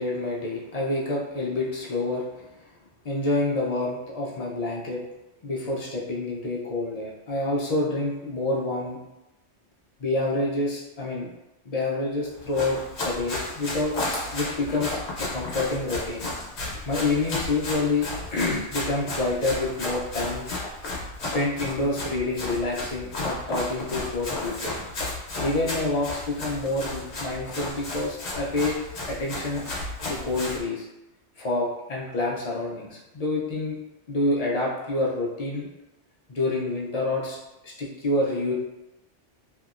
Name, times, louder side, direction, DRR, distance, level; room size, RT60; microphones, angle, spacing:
voice 1, 0.0-2.5 3.0-5.0 5.4-9.0 10.0-11.3 11.7-12.8 13.0-14.0 14.3-16.2 16.9-20.5 21.3-24.8 25.4-28.8 29.1-29.6 30.1-30.9 31.4-33.8 34.1-35.7 36.3-37.4 37.6-38.5, left 2 dB, 50° left, -4 dB, 0.4 m, -27 dB
Run, 12.4-30.6, left 2 dB, 65° left, 1.0 m, -33 dB
2.8 x 2.6 x 2.4 m, 0.95 s
omnidirectional pair, 1.2 m